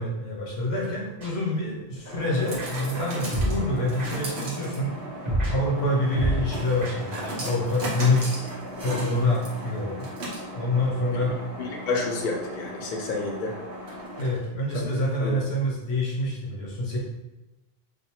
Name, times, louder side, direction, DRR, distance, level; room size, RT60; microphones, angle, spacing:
voice 1, 0.0-4.9 5.5-8.3 8.8-10.1 10.5-11.4 14.2-17.0, left 1 dB, 85° left, -2 dB, 1.0 m, -26 dB
sound 1, 0.6-14.6, right 1 dB, 75° right, 1.0 m, -36 dB
sound 2, 1.2-1.3 2.6-2.7 3.3-3.5 4.0-4.1 5.2-5.5 6.1-6.4 6.8-6.9, right 1 dB, 45° right, 1.1 m, -26 dB
voice 2, 11.6-13.6 15.2-15.4, left 3 dB, 60° left, 0 dB, 0.6 m, -29 dB
2.5 x 2.1 x 2.8 m, 1.0 s
omnidirectional pair, 1.0 m